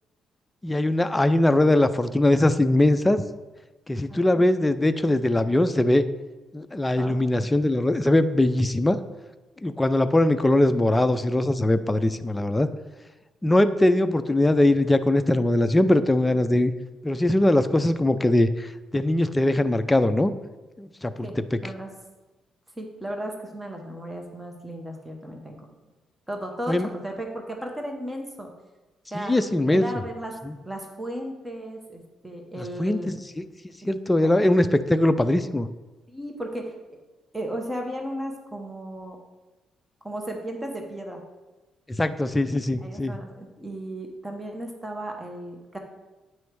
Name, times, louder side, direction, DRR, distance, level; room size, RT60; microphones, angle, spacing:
voice 1, 0.6-3.2 3.9-6.0 6.5-9.0 9.6-12.7 13.4-16.7 17.0-20.3 20.8-21.3 26.7-26.9 29.1-29.9 32.8-33.4 33.8-35.7 42.0-43.2, left 1 dB, 15° left, 10 dB, 0.3 m, -21 dB
voice 2, 4.1-4.5 7.0-7.1 21.2-21.4 21.6-21.9 22.8-25.6 26.3-28.5 29.1-29.3 29.7-30.4 30.6-33.1 33.8-33.9 34.4-34.6 36.1-36.7 37.3-39.2 40.0-41.2 42.8-45.8, right 1 dB, 10° right, 2 dB, 1.0 m, -35 dB
9.1 x 3.2 x 4.6 m, 1.2 s
cardioid pair, 90°, 0 cm